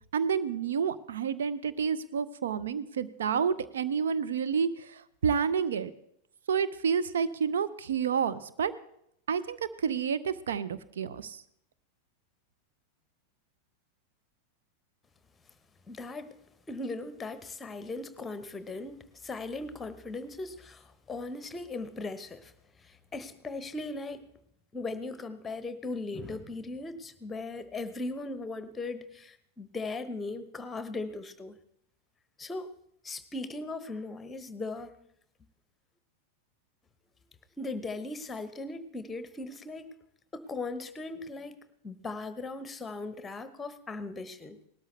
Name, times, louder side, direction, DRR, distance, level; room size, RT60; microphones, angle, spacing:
voice 1, 0.1-5.9 6.5-8.7 9.3-11.4, right 6 dB, 65° right, 13 dB, 0.6 m, -29 dB
voice 2, 15.9-16.3 16.7-22.5 22.8-24.2 24.7-31.6 32.4-32.7 33.0-34.9 37.6-39.9 40.3-44.6, left 3 dB, 15° left, 12 dB, 1.0 m, -38 dB
19.0 x 13.0 x 3.3 m, 0.73 s
figure-of-eight pair, 90°, 0 cm